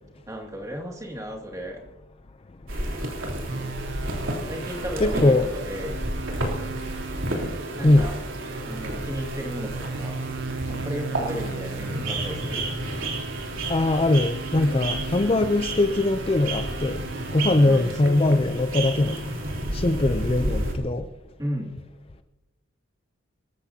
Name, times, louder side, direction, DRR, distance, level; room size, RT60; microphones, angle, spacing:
voice 1, 0.2-1.8 4.5-6.0 7.8-8.2 8.7-10.2 10.7-12.7 17.5-18.4 21.4-21.8, equal, 15° right, 2.3 m, -34 dB
sound 1, 2.7-20.8, right 1 dB, 75° right, 3.4 m, -31 dB
sound 2, 3.5-18.0, right 5 dB, 55° right, 0.7 m, -37 dB
voice 2, 5.0-5.5 7.8-8.1 13.7-19.2 19.7-21.1, left 2 dB, 30° left, 0.5 m, -21 dB
26.5 x 14.0 x 2.8 m
head